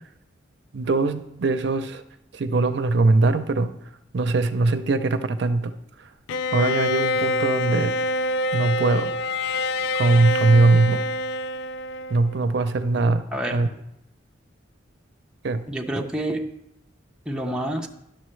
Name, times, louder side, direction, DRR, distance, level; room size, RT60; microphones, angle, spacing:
voice 1, 0.7-2.0 2.3-3.7 4.1-5.7 6.5-7.9 8.5-9.1 9.9-11.0 12.1-13.7 15.4-15.6, right 3 dB, 60° right, 10 dB, 0.5 m, -21 dB
Bowed string instrument, 6.3-12.3, left 1 dB, 80° left, 0.3 m, -26 dB
voice 2, 13.3-13.7 15.7-16.5 17.3-17.9, right 1 dB, 5° right, 0 dB, 0.5 m, -28 dB
11.0 x 6.6 x 3.2 m, 0.82 s
head